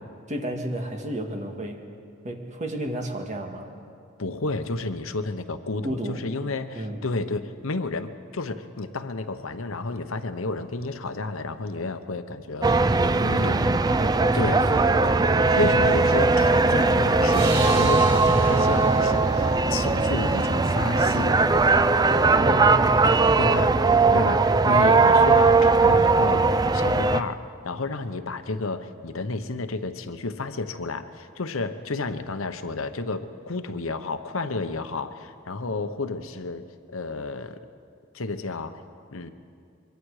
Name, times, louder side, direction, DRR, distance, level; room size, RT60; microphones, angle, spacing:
voice 1, 0.3-1.8 2.2-3.7 5.8-6.2 6.7-7.1 13.1-13.6 14.0-14.8 22.4-23.7 24.1-24.3, right 1 dB, 35° right, 3 dB, 1.9 m, -32 dB
voice 2, 4.2-13.7 14.3-14.6 15.0-15.1 15.6-21.4 23.4-23.7 24.1-24.4 24.6-37.6 38.1-38.8 39.1-39.3, left 3 dB, 70° left, 9 dB, 1.0 m, -31 dB
sound 1, 12.6-27.2, right 3 dB, 20° right, 0.4 m, -19 dB
sound 2, 17.3-20.8, right 3 dB, 55° right, 6.2 m, -37 dB
25.0 x 23.0 x 4.9 m, 2.3 s
head